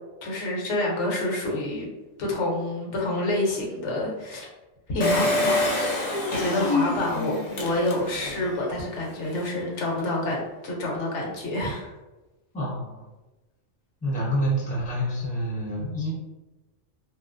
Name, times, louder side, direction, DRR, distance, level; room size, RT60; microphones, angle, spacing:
voice 1, 0.2-1.9 2.2-4.5 4.9-11.9, left 1 dB, 75° left, -1 dB, 1.0 m, -28 dB
Engine, 5.0-8.5 8.9-9.0 9.2-9.3, left 2 dB, 55° left, 0.4 m, -26 dB
voice 2, 12.5-13.1 14.0-16.2, equal, 10° left, -5 dB, 0.6 m, -28 dB
2.9 x 2.3 x 2.4 m, 1.1 s
omnidirectional pair, 1.2 m